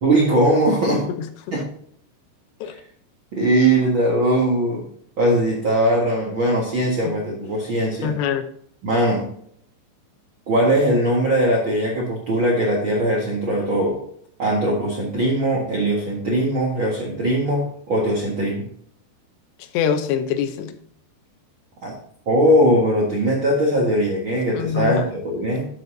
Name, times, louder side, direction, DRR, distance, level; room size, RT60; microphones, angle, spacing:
voice 1, 0.0-1.0 1.5-1.6 2.6-2.8 3.3-4.8 5.2-8.2 8.8-9.3 10.5-14.0 14.4-18.7 21.8-21.9 22.2-25.7, right 1 dB, 85° right, -3 dB, 1.1 m, -20 dB
voice 2, 1.1-1.6 2.6-2.7 7.1-7.2 8.0-8.5 19.7-20.7 24.5-25.1, left 8 dB, 80° left, 8 dB, 2.9 m, -24 dB
10.5 x 7.7 x 2.7 m, 0.65 s
omnidirectional pair, 5.1 m